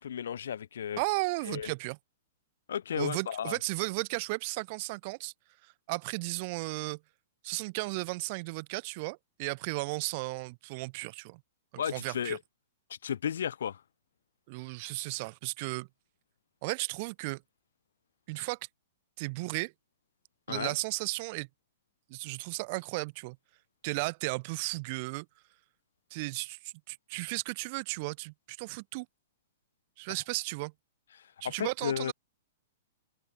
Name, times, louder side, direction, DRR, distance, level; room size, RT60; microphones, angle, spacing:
voice 1, 0.0-1.0 1.5-1.7 2.7-3.6 11.8-12.4 12.9-13.8 20.5-20.7 31.4-32.1, left 8 dB, 75° left, 0.3 m, -34 dB
voice 2, 1.0-2.0 3.0-5.3 5.6-7.0 7.4-11.4 11.7-12.4 14.5-15.9 16.6-17.4 18.3-18.6 19.2-19.7 20.5-21.5 22.1-23.4 23.8-25.3 26.1-29.1 30.0-30.7 31.4-32.1, right 26 dB, 30° right, 0.6 m, -35 dB
hypercardioid pair, 175°, 0 cm